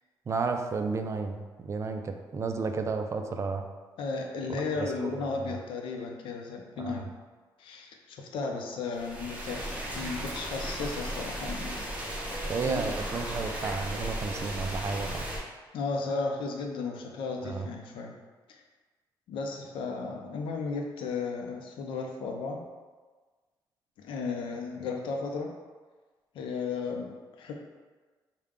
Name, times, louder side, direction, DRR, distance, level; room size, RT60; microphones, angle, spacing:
voice 1, 0.3-3.6 4.5-5.3 6.8-7.1 12.5-15.3 17.4-17.7, right 4 dB, 35° right, 5 dB, 0.3 m, -32 dB
voice 2, 4.0-7.1 7.6-12.3 12.7-12.8 15.7-18.2 18.5-18.6 19.3-22.6 24.0-25.5 26.3-27.5, left 4 dB, 85° left, 2 dB, 0.6 m, -35 dB
sound 1, 8.9-15.4, right 1 dB, 15° right, 0.8 m, -35 dB
4.6 x 2.2 x 3.6 m, 1.4 s
cardioid pair, 115°, 8 cm